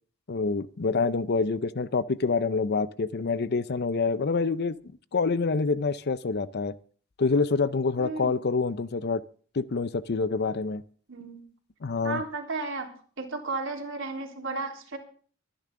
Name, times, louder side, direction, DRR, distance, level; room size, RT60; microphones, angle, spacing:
voice 1, 0.3-4.8 5.1-6.7 7.2-9.2 9.5-10.8 11.8-12.2, left 4 dB, 50° left, 0.6 m, -26 dB
voice 2, 8.0-8.4 11.1-11.4 12.0-12.9 13.2-15.0, right 3 dB, 65° right, 3.8 m, -34 dB
23.5 x 10.5 x 3.8 m
head